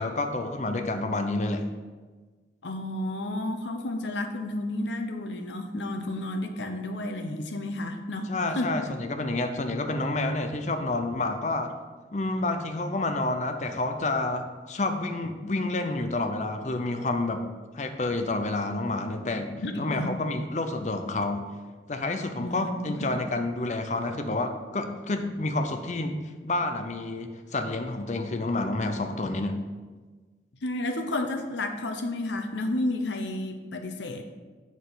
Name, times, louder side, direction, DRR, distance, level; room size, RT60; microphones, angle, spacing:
voice 1, 0.0-1.7 8.3-11.7 12.1-17.5 17.7-21.5 21.9-26.2 26.4-29.6, left 2 dB, 40° left, 6 dB, 0.6 m, -29 dB
voice 2, 2.6-8.7 19.6-20.2 22.4-23.2 30.6-34.3, left 1 dB, 80° left, 5 dB, 0.8 m, -31 dB
7.3 x 6.3 x 4.0 m, 1.4 s
head